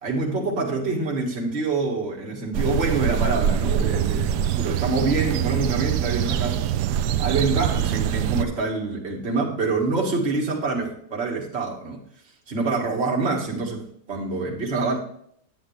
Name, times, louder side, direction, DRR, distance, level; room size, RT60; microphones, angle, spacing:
voice 1, 0.0-6.6 7.2-12.0 12.5-15.0, right 3 dB, 40° right, -1 dB, 2.1 m, -26 dB
sound 1, 2.5-8.4, right 9 dB, 75° right, 1.2 m, -24 dB
10.0 x 8.8 x 3.3 m, 0.67 s
omnidirectional pair, 1.8 m